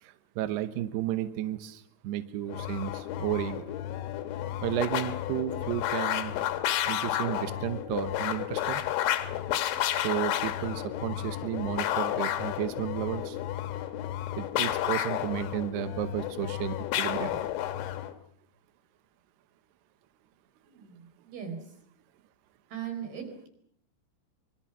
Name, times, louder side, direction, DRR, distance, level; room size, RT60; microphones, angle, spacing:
voice 1, 0.0-3.7 4.6-6.3 6.9-8.8 9.9-13.4 14.4-17.4, right 13 dB, 75° right, 10 dB, 2.5 m, -33 dB
sound 1, 2.5-18.1, left 12 dB, 80° left, 4.0 m, -31 dB
voice 2, 20.7-21.6 22.7-23.5, right 8 dB, 50° right, 4 dB, 6.1 m, -39 dB
25.5 x 23.5 x 6.1 m, 0.67 s
omnidirectional pair, 5.9 m